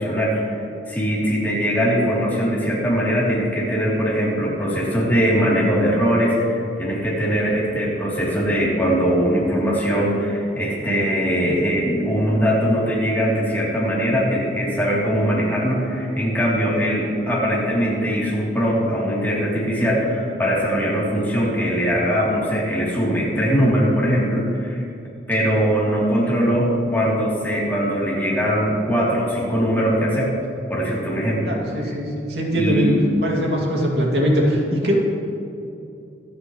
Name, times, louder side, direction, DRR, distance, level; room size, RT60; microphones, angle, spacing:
voice 1, 0.0-24.8 25.3-30.3 30.7-31.6 31.8-32.0 32.5-33.0, equal, 10° left, -6 dB, 3.3 m, -21 dB
voice 2, 31.5-32.9 33.2-35.0, equal, 70° right, -2 dB, 2.6 m, -21 dB
24.5 x 10.0 x 3.3 m, 2.6 s
head